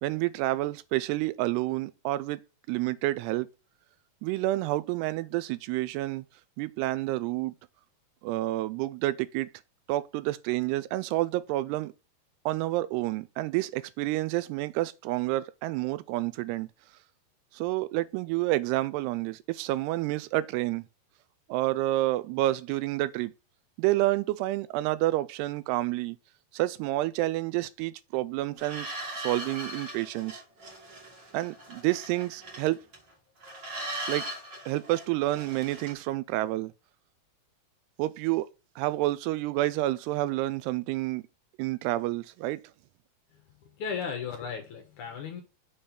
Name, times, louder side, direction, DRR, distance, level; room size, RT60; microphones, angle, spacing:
voice 1, 0.0-2.4 2.7-3.5 4.2-6.2 6.6-7.6 8.2-9.5 9.9-11.9 12.5-16.7 17.5-20.8 21.5-23.3 23.8-26.2 26.5-30.4 31.3-32.8 34.1-34.3 34.7-36.7 38.0-38.5 38.8-41.2 41.6-42.6, right 17 dB, 90° right, 2.6 m, -29 dB
sound 1, 28.6-33.1 33.4-35.9, right 1 dB, 40° right, 1.7 m, -40 dB
voice 2, 43.3-45.4, left 6 dB, 65° left, 2.2 m, -36 dB
7.0 x 3.3 x 5.7 m
omnidirectional pair, 4.6 m